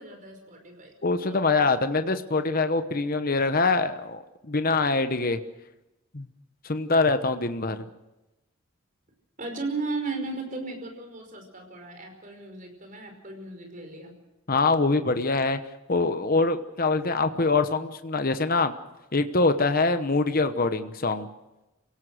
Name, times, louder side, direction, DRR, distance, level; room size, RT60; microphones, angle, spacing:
voice 1, 0.0-0.9 1.3-1.4 9.4-14.1, right 3 dB, 40° right, 4 dB, 5.1 m, -35 dB
voice 2, 1.0-5.4 6.1-6.3 6.6-7.9 14.5-15.6 15.9-18.7 19.1-21.3, left 3 dB, 40° left, 9 dB, 1.0 m, -24 dB
27.5 x 17.5 x 6.4 m, 0.99 s
head